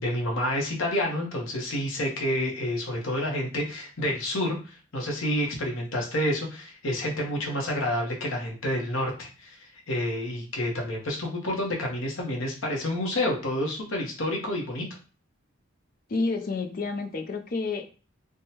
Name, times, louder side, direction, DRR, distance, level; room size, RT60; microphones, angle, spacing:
voice 1, 0.0-14.9, left 1 dB, 80° left, 0 dB, 0.9 m, -29 dB
voice 2, 16.1-17.8, left 3 dB, 45° left, 6 dB, 0.4 m, -29 dB
3.4 x 2.1 x 2.8 m, 0.36 s
head